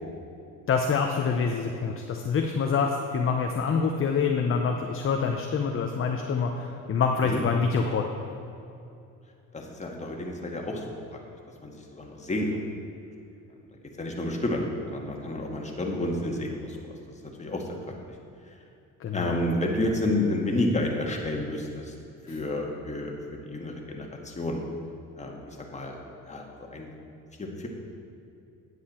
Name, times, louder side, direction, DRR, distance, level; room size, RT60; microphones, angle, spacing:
voice 1, 0.7-8.1 19.0-19.3 22.3-22.4, left 5 dB, 40° left, 3 dB, 0.8 m, -26 dB
voice 2, 9.5-10.9 11.1-11.2 11.6-12.6 14.0-14.6 14.9-17.0 17.2-17.6 19.1-21.9 22.3-24.6 25.2-26.0 26.3-26.4 26.7-26.9 27.4-27.7, left 1 dB, 20° left, 0 dB, 1.8 m, -30 dB
9.6 x 8.0 x 4.4 m, 2.7 s
supercardioid pair, 80°, 34 cm